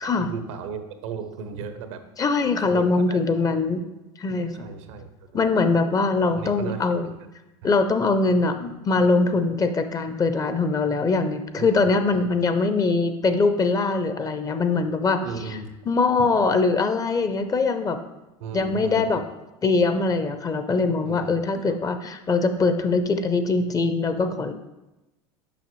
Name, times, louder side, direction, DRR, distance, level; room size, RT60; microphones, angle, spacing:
voice 1, 0.0-2.0 2.6-3.2 3.5-3.6 4.6-5.4 6.3-7.3 7.6-7.7 11.6-12.3 15.2-15.8 16.2-16.3 18.4-19.2 21.0-21.8, right 5 dB, 80° right, 9 dB, 0.7 m, -36 dB
voice 2, 2.2-3.8 4.2-4.7 5.3-7.1 7.6-15.2 15.9-18.0 18.5-19.2 19.6-24.5, left 3 dB, 25° left, 9 dB, 0.5 m, -22 dB
6.9 x 5.5 x 3.1 m, 0.99 s
supercardioid pair, 100°, 15 cm